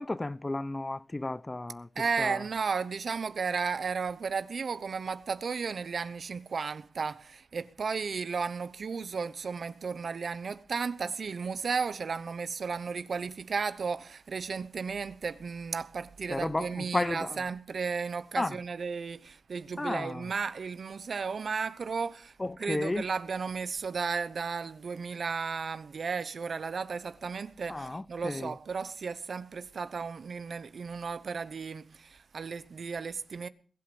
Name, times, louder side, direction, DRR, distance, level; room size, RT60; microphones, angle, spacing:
voice 1, 0.0-1.9 2.2-2.4 16.3-17.4 18.4-18.6 19.8-20.2 22.4-23.0 27.7-28.5, left 2 dB, 30° left, 0.6 m, -33 dB
voice 2, 1.9-33.5, right 5 dB, 70° right, 0.9 m, -34 dB
21.0 x 8.2 x 7.0 m
cardioid pair, 45°, 0 cm